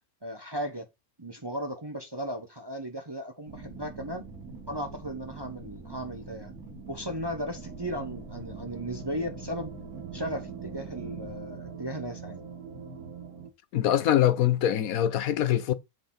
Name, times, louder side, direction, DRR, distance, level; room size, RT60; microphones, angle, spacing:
voice 1, 0.2-0.9 1.2-4.3 4.7-6.6 6.9-9.7 10.1-12.4, equal, 20° right, 0.8 m, -36 dB
sound 1, 3.5-11.4, right 4 dB, 65° right, 3.9 m, -44 dB
sound 2, 7.5-13.5, right 6 dB, 85° right, 2.0 m, -43 dB
voice 2, 13.7-15.7, left 11 dB, 70° left, 1.1 m, -23 dB
7.9 x 6.5 x 3.9 m
omnidirectional pair, 1.6 m